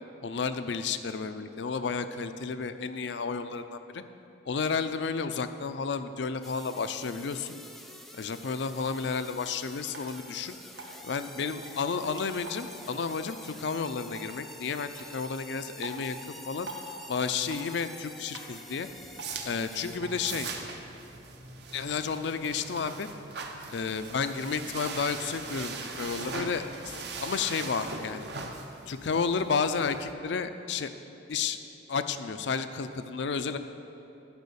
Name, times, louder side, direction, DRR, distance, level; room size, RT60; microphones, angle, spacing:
voice 1, 0.2-4.0 4.5-7.6 8.1-10.6 11.0-16.2 16.5-16.7 17.1-18.9 19.4-20.5 21.7-23.1 23.7-28.3 28.9-30.9 31.3-31.6 31.9-33.6, left 5 dB, 65° left, 10 dB, 0.5 m, -32 dB
sound 1, 6.4-20.0, left 1 dB, ahead, 0.5 m, -48 dB
Drip, 8.8-20.8, right 1 dB, 85° right, 1.4 m, -48 dB
sound 2, 18.8-30.1, right 4 dB, 60° right, 0.9 m, -41 dB
10.5 x 5.6 x 6.9 m, 2.8 s
head